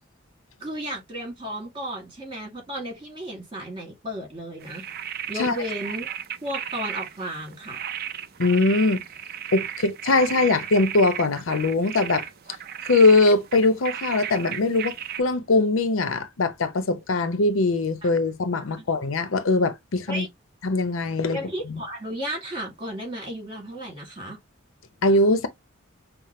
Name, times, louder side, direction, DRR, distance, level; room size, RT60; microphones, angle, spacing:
voice 1, 0.6-4.9 5.3-6.1 6.4-7.8 18.0-18.2 18.8-18.9 20.1-20.3 21.3-24.4, equal, 25° right, 2.2 m, -34 dB
sound 1, 4.6-15.2, right 10 dB, 50° right, 0.4 m, -35 dB
voice 2, 8.4-9.0 9.5-12.2 12.9-20.3 20.6-21.4 25.0-25.5, left 2 dB, 85° left, 0.7 m, -21 dB
5.7 x 2.0 x 3.0 m
head